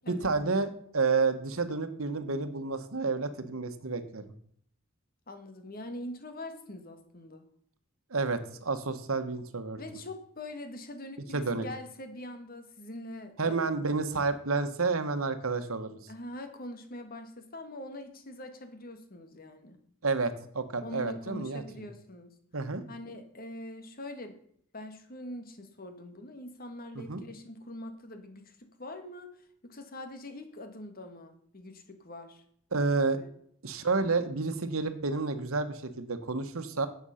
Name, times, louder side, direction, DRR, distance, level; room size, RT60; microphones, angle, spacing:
voice 1, 0.1-4.3 8.1-9.8 11.3-11.6 13.4-16.0 20.0-21.6 22.5-22.8 26.9-27.2 32.7-33.2 33.6-36.9, right 4 dB, 85° right, 9 dB, 1.2 m, -30 dB
voice 2, 5.3-7.4 9.8-13.7 16.1-19.8 20.8-22.3 22.9-24.4 24.7-32.4 33.1-33.3, left 1 dB, 45° left, 8 dB, 1.7 m, -43 dB
11.5 x 8.1 x 5.7 m, 0.64 s
head